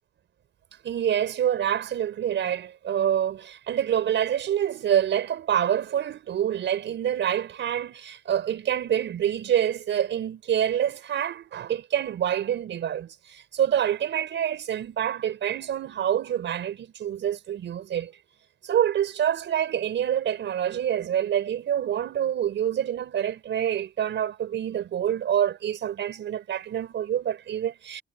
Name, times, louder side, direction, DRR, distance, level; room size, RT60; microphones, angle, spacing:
voice 1, 0.8-18.1 18.6-28.0, right 10 dB, 65° right, 4.9 m, -26 dB
cardioid pair, 90°, 20 cm